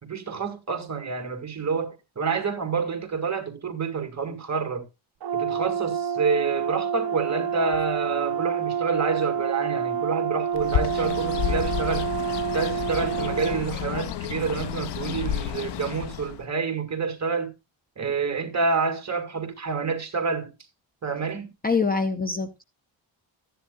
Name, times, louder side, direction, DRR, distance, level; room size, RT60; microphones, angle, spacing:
voice 1, 0.0-4.8 5.3-12.1 12.5-17.5 18.0-20.5 21.0-21.5, right 5 dB, 35° right, 1.9 m, -28 dB
Brass instrument, 5.2-13.6, right 7 dB, 50° right, 0.9 m, -28 dB
Bird, 10.6-16.5, left 10 dB, 60° left, 0.6 m, -31 dB
voice 2, 21.6-22.6, left 4 dB, 20° left, 0.7 m, -24 dB
14.0 x 10.0 x 2.4 m
wide cardioid pair, 140°, 49 cm